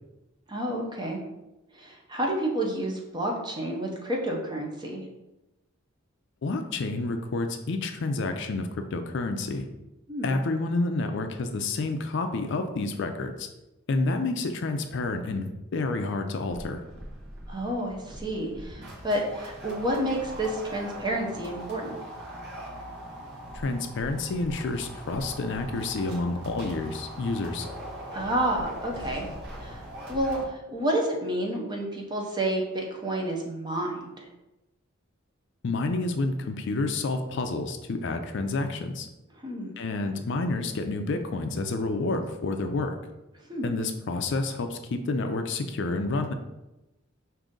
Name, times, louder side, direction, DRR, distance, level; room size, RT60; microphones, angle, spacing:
voice 1, 0.5-1.2 1.8-5.0 10.1-10.3 17.5-22.0 28.1-29.3 29.6-29.8 30.1-30.4 30.7-34.3 39.4-39.7 43.5-43.7, right 1 dB, 20° right, 0 dB, 0.7 m, -30 dB
voice 2, 6.4-9.7 10.2-13.5 13.9-16.8 23.5-27.7 35.6-39.1 39.8-43.0 43.6-46.3, left 3 dB, 60° left, 6 dB, 0.4 m, -29 dB
sound 1, 16.5-30.4, equal, 55° right, 1.0 m, -41 dB
5.0 x 2.7 x 3.8 m, 0.96 s
head